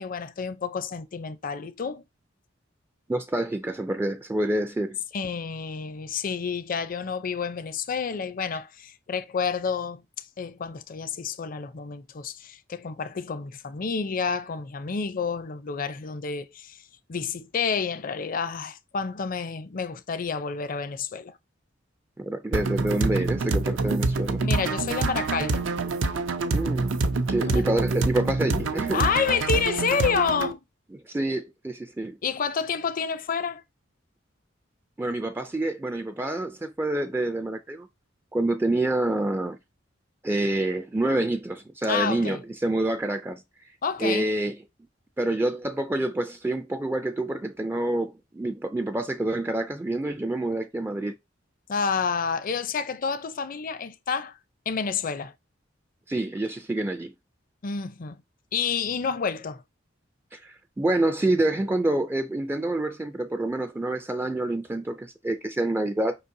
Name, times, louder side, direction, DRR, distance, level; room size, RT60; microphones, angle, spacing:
voice 1, 0.0-2.0 5.1-16.8 17.1-21.3 24.4-25.7 27.4-27.6 28.9-30.6 32.2-33.6 41.9-42.4 43.8-44.3 51.7-54.3 54.7-55.3 57.6-58.2 58.5-59.6, left 6 dB, 45° left, 0.5 m, -29 dB
voice 2, 3.1-5.0 22.2-24.4 26.5-27.0 27.3-29.1 30.9-32.2 35.0-37.9 38.3-39.6 40.2-43.4 44.0-44.6 45.2-51.2 56.1-57.1 60.3-66.1, right 1 dB, 10° right, 0.3 m, -27 dB
sound 1, 22.5-30.5, right 3 dB, 80° right, 0.6 m, -26 dB
5.1 x 3.9 x 2.6 m
head